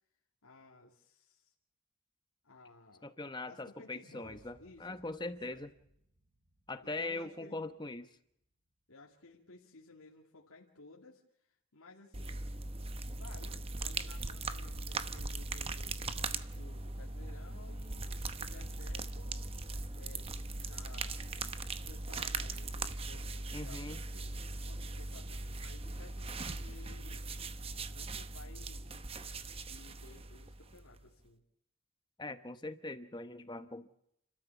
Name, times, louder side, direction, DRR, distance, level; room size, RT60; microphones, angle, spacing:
voice 1, 0.4-1.5 2.4-3.1 3.5-5.7 6.8-7.7 8.9-11.2 11.5-12.5 13.2-19.5 20.0-21.6 21.8-24.3 24.7-27.3 27.9-29.1 29.7-31.4, left 3 dB, 80° left, -2 dB, 2.5 m, -57 dB
voice 2, 3.0-5.7 6.7-8.1 23.5-24.0 32.2-33.9, left 2 dB, 20° left, 10 dB, 1.0 m, -41 dB
sound 1, 4.0-8.3, equal, 50° right, 3.4 m, -66 dB
sound 2, 12.1-31.0, right 3 dB, 25° right, 0.8 m, -40 dB
30.0 x 13.0 x 7.3 m, 0.76 s
head